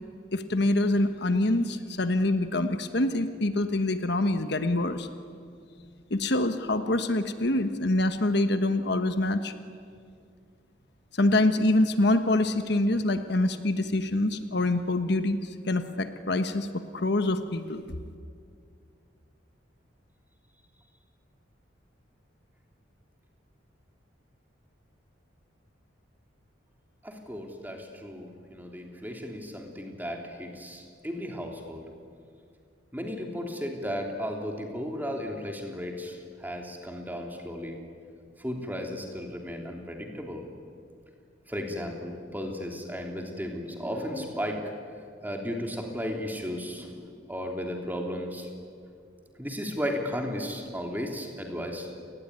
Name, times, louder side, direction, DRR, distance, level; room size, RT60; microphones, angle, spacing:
voice 1, 0.3-5.1 6.1-9.5 11.2-17.8, left 2 dB, 60° left, 9 dB, 1.2 m, -25 dB
voice 2, 27.0-31.8 32.9-37.8 38.4-40.5 41.5-44.6 45.2-48.5 49.4-51.9, equal, 10° right, 2 dB, 3.2 m, -35 dB
29.5 x 20.0 x 9.7 m, 2.3 s
head